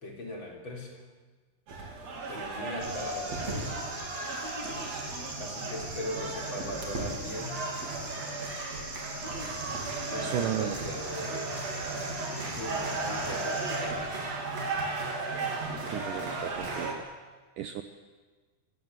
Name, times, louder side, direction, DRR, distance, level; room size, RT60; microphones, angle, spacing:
voice 1, 0.0-0.9 2.3-3.8 5.4-7.5 10.1-11.5 12.2-14.1, left 1 dB, 30° left, 1 dB, 4.4 m, -39 dB
sound 1, 1.7-16.9, right 3 dB, 45° right, 4.0 m, -35 dB
sound 2, 2.8-13.8, right 2 dB, 90° right, 7.6 m, -42 dB
voice 2, 10.2-10.8 15.7-17.0 17.6-17.8, right 11 dB, 70° right, 8 dB, 2.1 m, -34 dB
28.5 x 15.0 x 9.7 m, 1.4 s
omnidirectional pair, 4.6 m